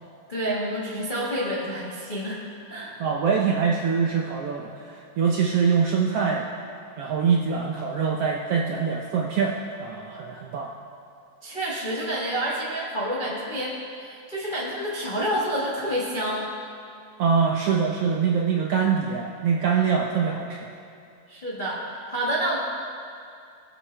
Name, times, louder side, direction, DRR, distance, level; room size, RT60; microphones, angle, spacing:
voice 1, 0.3-2.4 2.7-3.0 11.4-16.5 21.3-22.6, right 1 dB, 50° left, -6 dB, 0.5 m, -28 dB
voice 2, 2.8-6.5 7.0-10.7 17.2-20.6, right 6 dB, 75° right, -1 dB, 1.4 m, -24 dB
19.0 x 7.7 x 3.3 m, 2.4 s
omnidirectional pair, 3.4 m